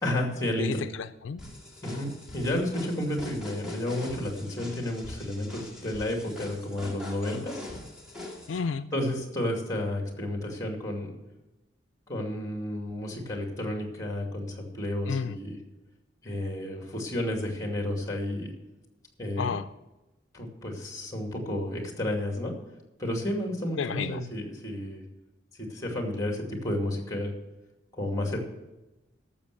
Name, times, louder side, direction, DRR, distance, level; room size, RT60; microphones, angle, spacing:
voice 1, 0.0-0.8 1.8-7.6 8.9-11.1 12.1-15.6 16.2-18.5 19.2-19.6 20.3-22.5 23.0-25.0 25.6-27.3 27.9-28.4, left 1 dB, 20° left, 2 dB, 2.4 m, -31 dB
voice 2, 0.6-1.4 7.3-7.4 8.5-8.9 15.1-15.4 19.4-19.7 23.8-24.2, left 6 dB, 75° left, 12 dB, 0.4 m, -31 dB
sound 1, 1.4-8.6, left 2 dB, 5° right, 2.0 m, -42 dB
12.5 x 7.3 x 6.7 m, 1.0 s
head